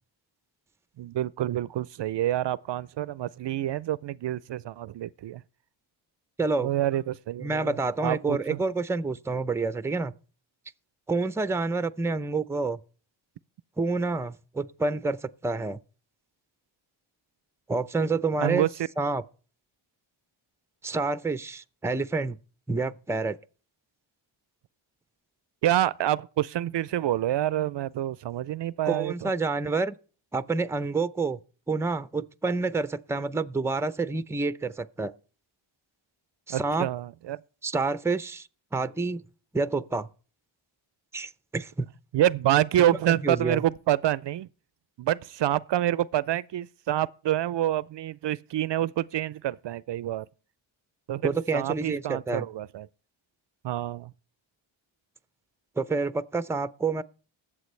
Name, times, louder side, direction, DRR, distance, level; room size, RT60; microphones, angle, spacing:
voice 1, 1.0-5.4 6.6-8.6 18.4-18.7 25.6-29.3 36.5-37.4 42.1-44.5 45.0-50.3 51.1-52.9 53.6-54.1, right 12 dB, 60° right, 0.5 m, -27 dB
voice 2, 6.4-6.7 7.4-10.1 11.1-12.8 13.8-15.8 17.7-18.7 19.0-19.2 20.8-22.4 22.7-23.4 28.9-29.9 30.3-31.4 31.7-35.1 36.5-36.9 37.6-39.2 39.5-40.1 41.1-41.9 43.1-43.6 51.2-52.5 55.8-57.0, right 3 dB, 5° right, 0.5 m, -28 dB
19.5 x 7.5 x 3.2 m
cardioid pair, 70°, 49 cm